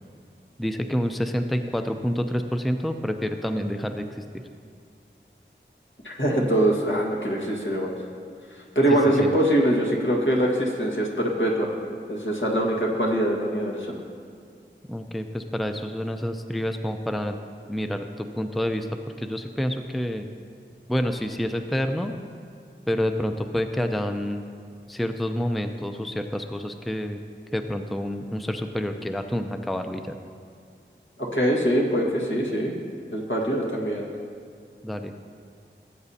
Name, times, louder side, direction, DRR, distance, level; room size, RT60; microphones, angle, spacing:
voice 1, 0.6-4.4 8.9-9.4 14.9-17.4 17.7-18.9 19.2-20.3 20.9-22.1 22.9-24.4 24.9-27.2 27.5-30.1 34.8-35.1, equal, ahead, 6 dB, 0.5 m, -28 dB
voice 2, 6.0-7.9 8.8-11.8 12.1-13.9 31.2-32.7 33.1-34.1, right 1 dB, 75° left, -3 dB, 1.7 m, -23 dB
18.0 x 8.0 x 2.8 m, 2.2 s
wide cardioid pair, 45°, 20 cm